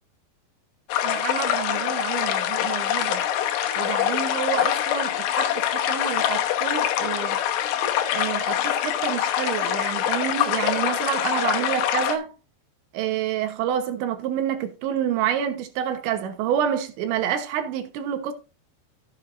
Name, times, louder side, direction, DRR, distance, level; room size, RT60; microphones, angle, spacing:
sound 1, 0.9-12.2, left 11 dB, 75° left, 3.1 m, -24 dB
voice 1, 1.0-3.2 3.8-7.4 8.1-12.3 12.9-18.3, right 9 dB, 80° right, 3.4 m, -28 dB
14.5 x 7.3 x 2.6 m
omnidirectional pair, 5.2 m